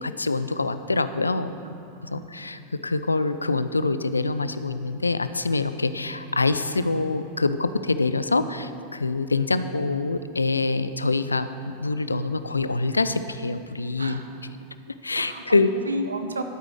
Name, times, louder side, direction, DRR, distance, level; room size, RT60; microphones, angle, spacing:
voice 1, 0.0-1.5 2.1-14.2 15.0-15.7, left 3 dB, 80° left, 12 dB, 0.4 m, -25 dB
voice 2, 1.6-2.3 14.0-14.3 15.1-15.6 15.8-16.4, right 1 dB, 75° right, 7 dB, 0.8 m, -33 dB
12.0 x 8.8 x 4.9 m, 2.6 s
figure-of-eight pair, 90°, 0 cm